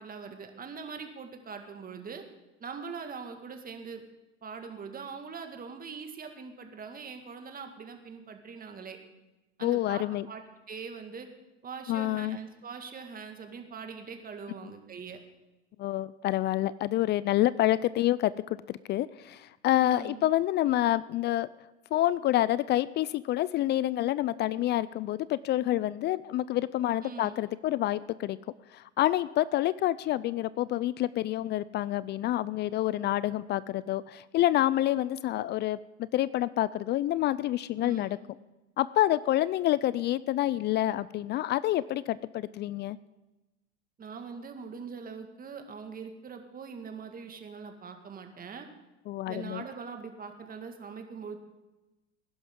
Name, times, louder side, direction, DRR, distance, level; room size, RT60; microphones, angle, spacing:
voice 1, 0.0-2.2 2.6-4.0 4.4-9.0 9.6-10.4 10.7-11.3 11.6-15.2 19.8-20.3 27.0-27.4 37.8-38.2 44.0-48.7 49.3-51.4, right 5 dB, 25° right, 5 dB, 1.9 m, -42 dB
voice 2, 9.6-10.3 11.9-12.4 15.8-21.5 21.9-28.4 28.7-38.2 38.8-43.0 49.1-49.6, left 14 dB, 30° left, 19 dB, 0.4 m, -28 dB
20.5 x 11.0 x 3.8 m, 1.0 s
hypercardioid pair, 90°, 34 cm